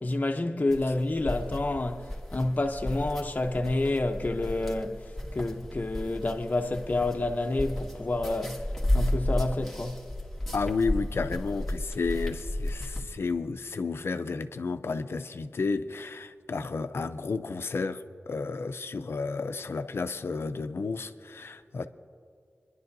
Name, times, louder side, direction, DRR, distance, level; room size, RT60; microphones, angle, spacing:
voice 1, 0.0-5.0 5.3-8.6 8.9-10.0, left 2 dB, 40° left, 0.7 m, -29 dB
sound 1, 0.7-13.0, left 1 dB, ahead, 1.7 m, -33 dB
voice 2, 10.5-21.9, left 4 dB, 75° left, 0.5 m, -32 dB
26.0 x 11.0 x 2.7 m
cardioid pair, 45°, 4 cm